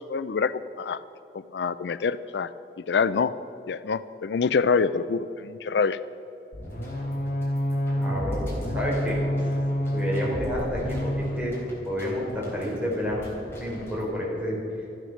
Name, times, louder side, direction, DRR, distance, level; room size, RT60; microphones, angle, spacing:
voice 1, 0.1-1.0 1.5-2.5 2.9-3.3 3.7-6.0, left 5 dB, 80° left, 15 dB, 0.4 m, -25 dB
sound 1, 6.5-11.4, equal, 50° left, 1.6 m, -28 dB
sound 2, 6.6-14.1, equal, 15° left, 3.6 m, -46 dB
voice 2, 8.0-8.4 8.7-9.2 9.9-11.5 11.9-13.3 13.6-14.9, equal, 5° right, -5 dB, 3.9 m, -29 dB
14.0 x 11.5 x 6.4 m, 2.9 s
head